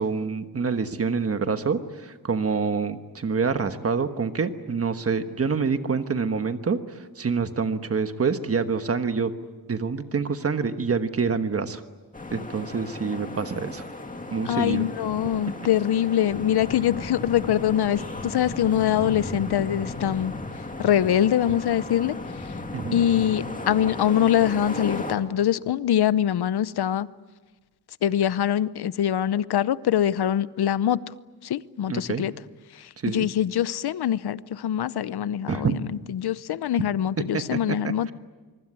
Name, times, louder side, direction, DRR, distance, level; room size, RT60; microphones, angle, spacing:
voice 1, 0.0-9.3 9.7-11.8 12.3-13.8 14.3-14.9 22.7-23.0 31.9-32.2 33.0-33.3 35.5-35.7 37.2-37.8, right 5 dB, 40° right, 9 dB, 1.3 m, -26 dB
sound 1, 12.1-25.2, left 2 dB, 20° left, 2.3 m, -35 dB
voice 2, 14.4-20.3 20.8-22.1 22.9-27.1 28.0-31.0 31.4-32.3 33.1-38.1, left 10 dB, 85° left, 17 dB, 0.8 m, -23 dB
25.0 x 24.0 x 9.7 m, 1.3 s
wide cardioid pair, 180°, 38 cm